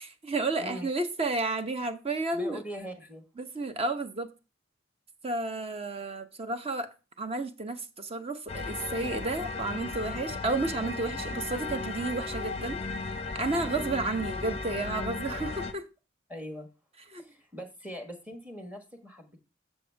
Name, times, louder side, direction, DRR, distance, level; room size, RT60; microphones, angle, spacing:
voice 1, 0.0-2.6 3.4-4.3 5.2-12.8 13.4-15.8 17.1-17.2, right 2 dB, 30° right, 0.8 m, -32 dB
voice 2, 0.6-0.9 2.3-3.2 13.4-13.9 16.3-16.7 17.2-19.4, equal, 10° right, 1.3 m, -42 dB
sound 1, 8.5-15.7, left 3 dB, 30° left, 0.6 m, -35 dB
7.2 x 6.9 x 3.4 m
head